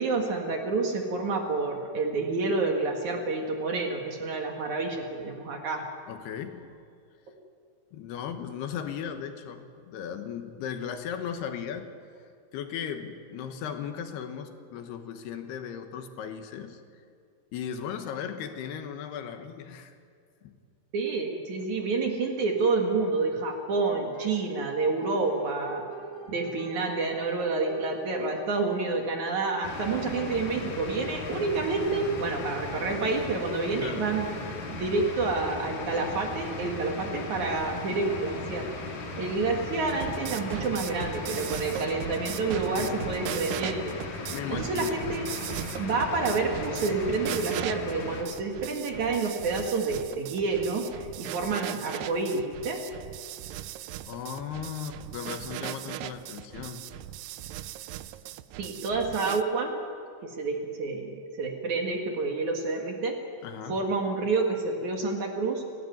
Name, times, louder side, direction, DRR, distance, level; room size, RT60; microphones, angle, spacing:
voice 1, 0.0-5.8 20.9-25.8 26.3-34.3 34.7-38.7 39.2-44.0 44.2-45.3 45.7-52.8 58.6-59.7 60.2-63.2 63.7-65.6, right 3 dB, 55° right, 2 dB, 2.8 m, -29 dB
voice 2, 6.1-6.8 7.9-11.9 12.5-16.8 17.5-19.9 20.4-20.6 33.7-34.1 42.8-43.2 44.3-45.1 53.5-53.6 54.0-56.9 63.4-63.8, left 8 dB, 75° left, 7 dB, 3.2 m, -37 dB
sound 1, 23.7-34.2, right 1 dB, 5° left, 6.3 m, -45 dB
sound 2, 29.6-48.2, left 3 dB, 50° left, 3.2 m, -37 dB
sound 3, 39.7-59.4, right 13 dB, 85° right, 1.9 m, -38 dB
30.0 x 12.5 x 9.3 m, 2.3 s
omnidirectional pair, 4.8 m